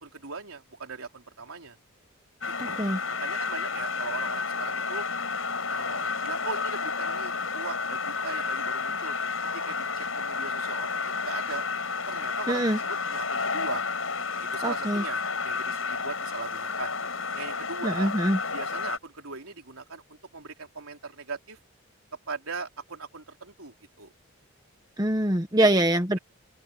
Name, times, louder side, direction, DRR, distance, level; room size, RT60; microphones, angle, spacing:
voice 1, 0.0-1.8 2.4-2.9 3.2-5.0 5.7-9.1 9.5-11.6 12.1-13.8 14.4-16.9 17.3-18.1 18.5-21.6 22.3-24.1 25.6-25.8, right 4 dB, 85° right, 3.9 m, -39 dB
sound 1, 2.4-19.0, left 4 dB, 70° left, 7.1 m, -31 dB
voice 2, 2.6-3.0 12.5-12.8 14.6-15.0 17.8-18.4 25.0-26.2, right 1 dB, 20° right, 1.1 m, -24 dB
head